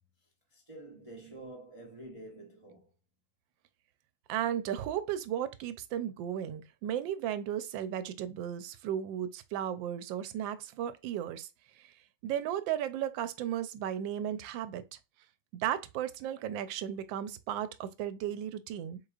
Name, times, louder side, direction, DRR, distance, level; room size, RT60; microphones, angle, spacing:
voice 1, 0.5-2.9, right 2 dB, 45° right, 0.4 m, -48 dB
voice 2, 4.3-11.5 12.2-14.8 15.5-19.0, right 10 dB, 80° right, 1.3 m, -35 dB
4.8 x 3.9 x 2.4 m
omnidirectional pair, 2.1 m